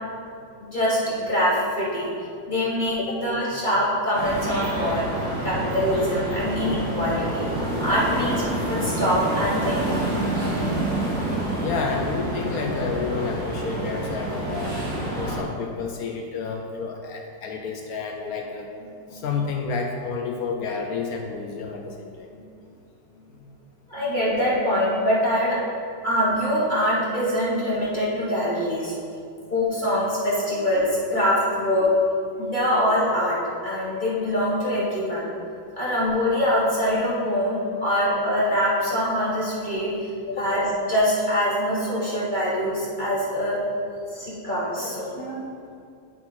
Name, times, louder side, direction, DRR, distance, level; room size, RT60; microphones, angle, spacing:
voice 1, 0.6-2.1 2.5-5.1 5.4-7.5 7.8-10.0 19.0-19.2 23.9-25.6 26.0-28.9 29.5-31.9 32.4-33.4 33.6-35.3 35.8-40.1 40.4-40.6 40.9-43.6 44.1-45.4, equal, 25° left, -8 dB, 1.6 m, -24 dB
sound 1, 4.1-15.4, right 1 dB, 90° right, 2.2 m, -27 dB
voice 2, 11.6-14.8 15.2-18.7 19.1-22.3 40.3-40.5 42.1-42.2, left 5 dB, 70° left, 2 dB, 0.9 m, -30 dB
10.5 x 4.1 x 4.2 m, 2.4 s
omnidirectional pair, 2.0 m